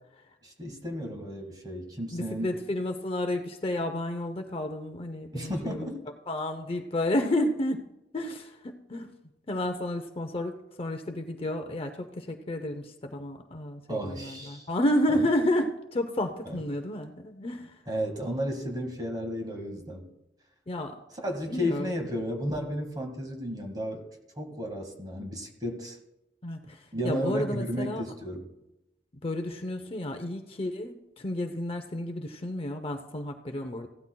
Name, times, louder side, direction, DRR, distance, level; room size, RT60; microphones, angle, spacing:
voice 1, 0.4-2.5 5.3-6.0 13.9-14.7 15.1-15.3 16.4-16.6 17.9-20.1 21.2-24.0 24.4-26.0 26.9-28.5, equal, 25° right, 3 dB, 1.8 m, -33 dB
voice 2, 2.1-5.9 6.3-7.8 8.1-9.1 9.5-10.5 10.8-17.8 20.7-20.9 21.5-22.0 26.4-28.0 29.2-33.9, left 1 dB, 30° left, 6 dB, 0.7 m, -31 dB
16.0 x 12.5 x 2.3 m, 0.91 s
head